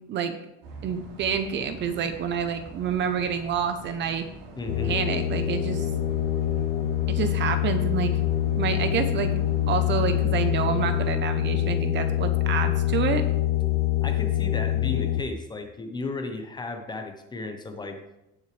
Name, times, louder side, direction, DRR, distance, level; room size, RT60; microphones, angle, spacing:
sound 1, 0.6-11.1, right 3 dB, 80° right, 3.6 m, -43 dB
voice 1, 0.8-4.3 4.8-5.9 7.1-8.1 8.6-9.3 9.7-13.2, right 7 dB, 40° right, 9 dB, 0.9 m, -28 dB
voice 2, 4.5-4.9 14.0-18.0, left 3 dB, 15° left, 5 dB, 1.0 m, -34 dB
sound 2, 4.7-15.2, left 13 dB, 85° left, 0.9 m, -25 dB
17.5 x 6.3 x 3.4 m, 0.87 s
cardioid pair, 150°, 29 cm